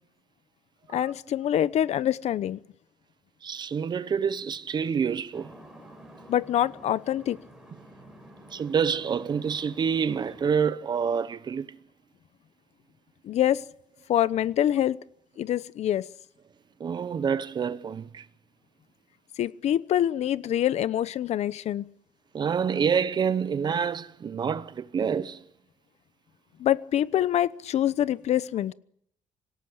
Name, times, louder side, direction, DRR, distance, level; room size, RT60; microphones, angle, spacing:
voice 1, 0.9-2.6 6.3-7.4 13.2-13.6 14.1-15.0 15.4-16.1 19.4-21.8 26.6-28.7, left 11 dB, 55° left, 0.9 m, -25 dB
voice 2, 3.4-5.5 8.5-11.7 16.8-18.2 22.3-25.4, right 6 dB, 35° right, 0.9 m, -27 dB
sound 1, 5.3-10.5, right 1 dB, 5° right, 6.3 m, -50 dB
26.0 x 18.0 x 8.6 m
cardioid pair, 165°, 13 cm